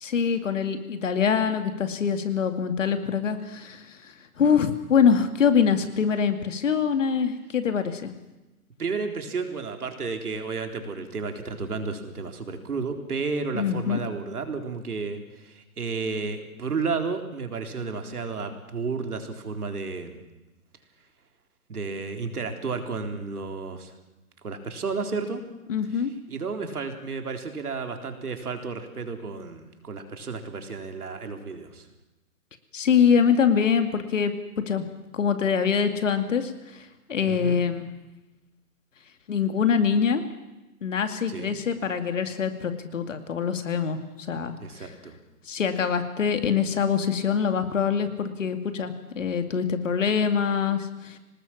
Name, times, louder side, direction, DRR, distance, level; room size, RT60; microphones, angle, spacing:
voice 1, 0.0-8.1 13.5-14.0 25.7-26.1 32.7-34.8 35.1-37.9 39.3-40.2 40.8-44.0 44.3-44.9 45.5-51.2, left 7 dB, 55° left, 8 dB, 2.4 m, -24 dB
voice 2, 8.8-20.2 21.7-23.9 24.4-25.4 25.9-31.9 37.2-37.6 41.3-41.6 44.6-45.2, right 4 dB, 70° right, 5 dB, 3.9 m, -32 dB
24.5 x 19.5 x 7.3 m, 1.0 s
hypercardioid pair, 165°, 46 cm